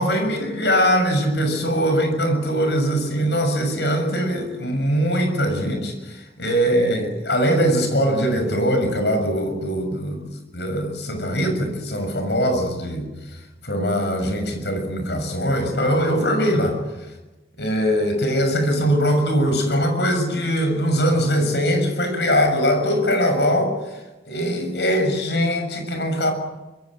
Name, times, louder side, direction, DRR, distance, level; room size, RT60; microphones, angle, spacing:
voice 1, 0.0-10.2 10.5-13.0 13.6-16.8 17.6-23.7 24.2-26.3, equal, 75° left, 6 dB, 6.6 m, -21 dB
25.5 x 22.0 x 7.7 m, 1.1 s
head